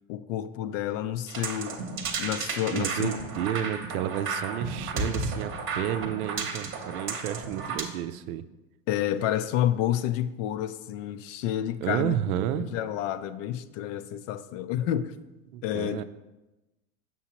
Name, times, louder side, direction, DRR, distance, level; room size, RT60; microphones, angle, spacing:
voice 1, 0.1-1.8 2.2-3.1 8.9-12.2 12.6-15.1 15.6-16.0, left 11 dB, 60° left, 0.5 m, -29 dB
sound 1, 1.3-7.8, right 4 dB, 30° right, 0.9 m, -33 dB
voice 2, 2.7-8.4 11.8-12.7 15.5-16.0, right 10 dB, 75° right, 0.5 m, -31 dB
7.0 x 5.8 x 2.9 m
supercardioid pair, 115°, 43 cm